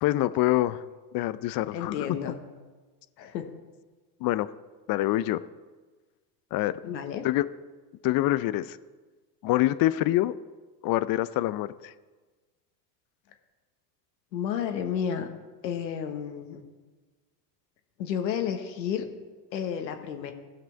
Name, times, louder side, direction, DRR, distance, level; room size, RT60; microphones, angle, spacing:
voice 1, 0.0-0.8 1.1-2.2 4.2-4.5 4.9-5.4 6.5-6.8 7.2-7.5 8.0-8.8 9.4-10.3 10.8-11.9, left 15 dB, 45° left, 16 dB, 0.5 m, -25 dB
voice 2, 1.7-2.4 3.2-3.5 6.8-7.3 14.3-15.3 15.6-16.6 18.0-19.1 19.5-20.3, left 8 dB, 85° left, 6 dB, 1.2 m, -31 dB
15.0 x 6.0 x 4.5 m, 1.3 s
hypercardioid pair, 80°, 50 cm